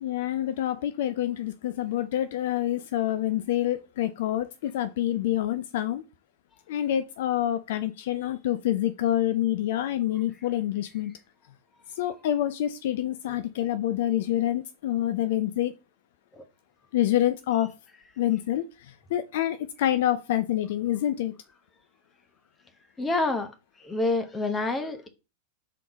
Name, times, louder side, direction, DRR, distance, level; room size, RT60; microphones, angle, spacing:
voice 1, 0.0-6.0 6.7-11.1 12.0-15.7 16.9-17.7 18.2-18.6 19.1-21.3, left 12 dB, 55° left, 0.4 m, -27 dB
voice 2, 23.0-23.5 23.8-25.1, left 2 dB, 15° left, 1.2 m, -27 dB
6.5 x 3.8 x 3.9 m
figure-of-eight pair, 90°, 0 cm